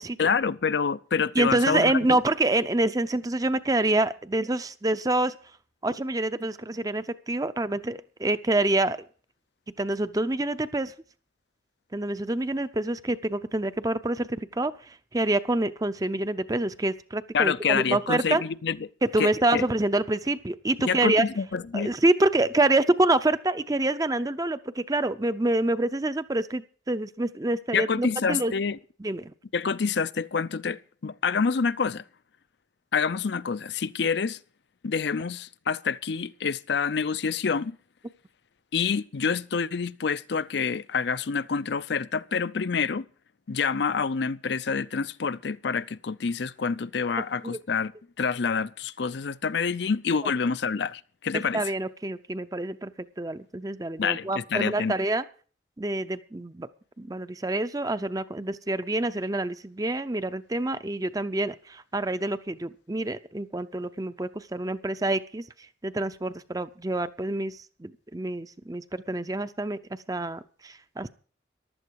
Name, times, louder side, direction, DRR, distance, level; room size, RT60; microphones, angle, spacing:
voice 1, 0.2-2.2 17.3-18.8 19.2-19.6 20.8-21.9 27.7-28.8 29.5-32.0 32.9-34.4 34.8-37.8 38.7-43.0 43.5-47.9 48.2-51.6 54.0-54.9, left 5 dB, 65° left, 0.5 m, -27 dB
voice 2, 1.4-5.3 5.8-9.0 9.8-10.9 11.9-18.4 19.0-21.2 21.7-28.5 29.0-29.3 47.4-47.6 51.3-52.9 53.2-55.2 55.8-56.7 57.0-65.5 65.8-69.8 70.1-71.1, right 2 dB, 20° right, 0.6 m, -27 dB
15.0 x 12.0 x 4.7 m
head